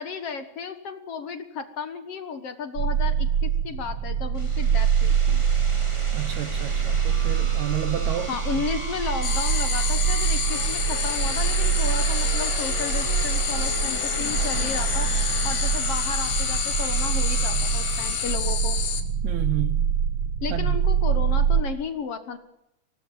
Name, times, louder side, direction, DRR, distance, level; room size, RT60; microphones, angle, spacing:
voice 1, 0.0-5.4 8.3-15.1 15.4-18.8 20.4-22.4, left 5 dB, 60° left, 1.6 m, -33 dB
sound 1, 2.8-21.6, right 8 dB, 45° right, 2.2 m, -25 dB
sound 2, 4.3-18.4, right 1 dB, 10° right, 2.1 m, -36 dB
voice 2, 6.1-8.6 19.2-19.9 20.5-20.8, right 11 dB, 65° right, 1.9 m, -31 dB
sound 3, 9.2-19.0, left 9 dB, 75° left, 3.8 m, -29 dB
25.0 x 19.0 x 7.3 m
omnidirectional pair, 4.4 m